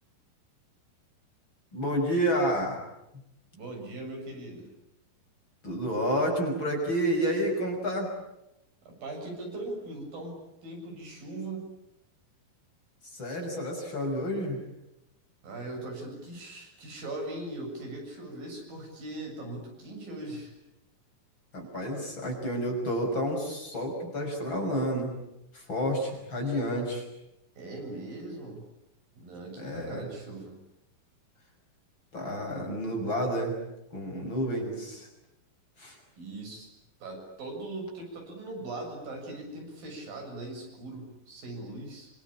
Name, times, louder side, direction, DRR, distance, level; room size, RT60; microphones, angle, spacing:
voice 1, 1.7-2.8 5.6-8.1 13.1-14.6 21.5-25.1 25.5-27.1 29.6-30.1 32.1-33.6 33.9-35.1 35.8-36.0, equal, 30° left, 2 dB, 6.7 m, -30 dB
voice 2, 3.6-4.7 8.9-10.4 10.6-11.6 15.4-20.5 27.6-28.6 29.2-30.6 36.2-36.7 37.0-42.1, right 2 dB, 70° right, 1 dB, 9.0 m, -40 dB
27.0 x 25.5 x 8.7 m, 0.88 s
omnidirectional pair, 4.2 m